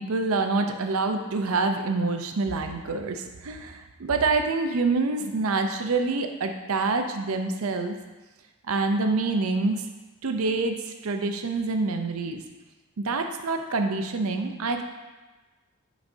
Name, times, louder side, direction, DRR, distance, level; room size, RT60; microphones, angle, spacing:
voice 1, 0.0-7.9 8.7-9.8 10.2-10.8 11.0-12.4 13.0-14.8, right 3 dB, 70° right, 6 dB, 0.6 m, -26 dB
9.3 x 4.1 x 2.7 m, 1.2 s
head